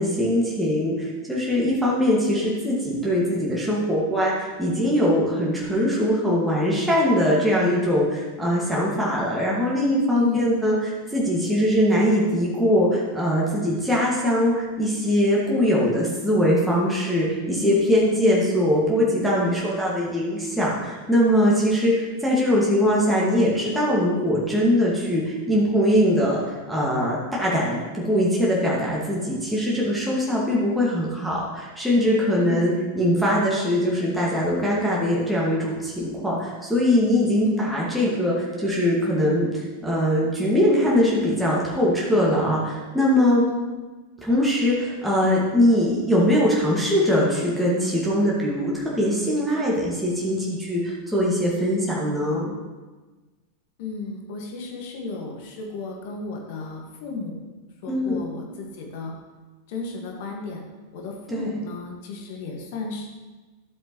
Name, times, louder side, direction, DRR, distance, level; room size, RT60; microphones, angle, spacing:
voice 1, 0.0-43.4 44.2-52.5 57.9-58.2 61.3-61.6, equal, ahead, -6 dB, 2.1 m, -22 dB
voice 2, 10.2-10.5 17.6-18.1 32.4-32.7 37.4-37.6 43.4-43.7 53.8-57.4 57.8-59.1 59.7-60.6 60.9-63.1, left 4 dB, 50° left, 0 dB, 2.0 m, -33 dB
13.0 x 7.4 x 3.2 m, 1.3 s
figure-of-eight pair, 90°, 0 cm